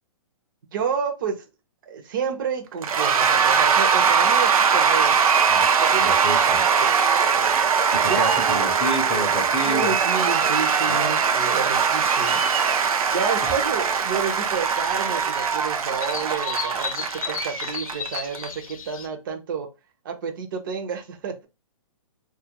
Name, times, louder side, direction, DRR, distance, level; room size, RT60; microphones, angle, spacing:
voice 1, 0.7-1.5 1.9-5.2 5.8-6.9 8.0-8.6 9.6-12.4 13.1-19.7 20.0-21.5, right 6 dB, 35° right, 0.5 m, -30 dB
Cheering / Applause / Crowd, 2.8-18.5, right 6 dB, 90° right, 0.5 m, -21 dB
voice 2, 6.0-6.6 7.3-7.7 7.9-10.0 10.9-11.1 13.4-13.6, left 1 dB, 15° left, 0.4 m, -30 dB
sound 1, 11.7-19.1, left 7 dB, 75° left, 0.6 m, -37 dB
2.3 x 2.1 x 2.8 m
hypercardioid pair, 165°, 18 cm